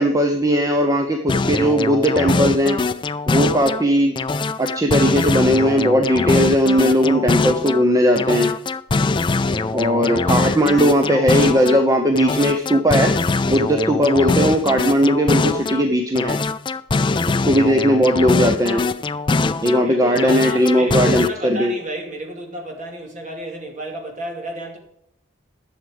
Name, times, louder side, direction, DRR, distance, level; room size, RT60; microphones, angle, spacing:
voice 1, 0.0-2.8 3.3-4.2 4.6-8.5 9.7-13.1 13.5-16.4 17.3-18.8 19.6-21.7, equal, 15° right, 0.7 m, -18 dB
sound 1, 1.3-3.8 4.2-7.8 8.2-11.8 12.2-15.8 16.2-19.8 20.2-21.3, left 3 dB, 25° left, 0.3 m, -22 dB
voice 2, 17.1-17.5 19.5-24.8, right 1 dB, 35° right, 2.6 m, -32 dB
11.0 x 7.3 x 5.1 m
head